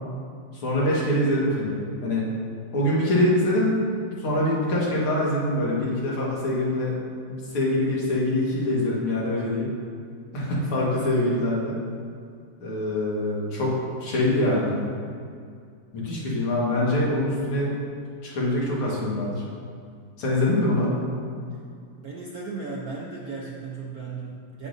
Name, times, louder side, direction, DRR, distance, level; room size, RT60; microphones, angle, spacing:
voice 1, 0.5-2.3 2.7-3.7 4.2-7.0 7.5-9.7 10.3-11.7 12.6-13.7 14.0-14.8 15.9-17.7 18.2-19.4 20.2-20.9, left 1 dB, 80° left, -5 dB, 2.5 m, -24 dB
voice 2, 22.0-24.7, right 4 dB, 65° right, -3 dB, 0.9 m, -35 dB
9.5 x 8.3 x 2.6 m, 2.3 s
omnidirectional pair, 2.4 m